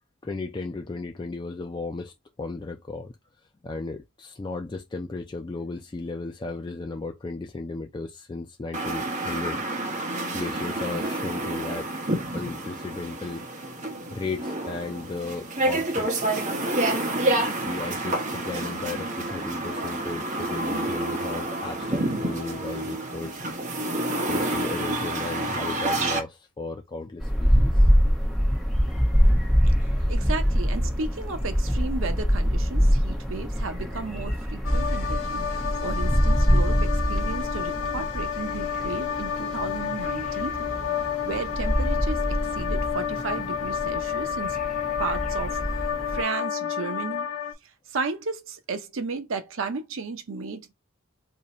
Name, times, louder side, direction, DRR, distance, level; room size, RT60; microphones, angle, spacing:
voice 1, 0.2-9.6 10.0-11.9 12.3-13.5 14.1-16.1 17.1-17.2 17.5-23.9 24.2-27.9, left 3 dB, 20° left, 0.3 m, -35 dB
sound 1, 8.7-26.2, right 1 dB, 35° right, 1.0 m, -29 dB
sound 2, 27.2-46.2, equal, ahead, 1.2 m, -25 dB
voice 2, 29.8-40.7 41.2-44.6 45.0-45.8 46.1-47.3 47.9-50.7, right 4 dB, 65° right, 0.7 m, -34 dB
sound 3, 34.6-47.5, left 8 dB, 70° left, 0.6 m, -30 dB
2.8 x 2.6 x 4.1 m
head